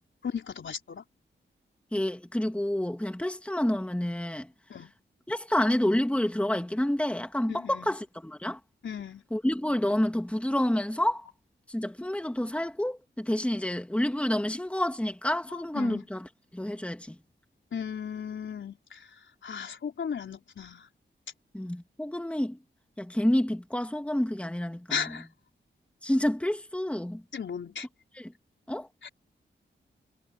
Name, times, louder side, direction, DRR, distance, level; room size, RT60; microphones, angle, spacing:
voice 1, 0.2-1.0 4.7-4.9 7.5-8.0 8.8-9.2 15.7-16.0 17.7-20.9 24.9-25.3 27.3-27.9 29.0-29.1, left 7 dB, 75° left, 4.2 m, -36 dB
voice 2, 1.9-4.5 5.3-8.6 9.3-11.3 11.7-17.2 21.5-22.6 23.0-25.1 26.0-27.2 28.1-28.3 28.7-28.9, left 1 dB, 5° left, 2.3 m, -29 dB
wide cardioid pair, 80°, 19 cm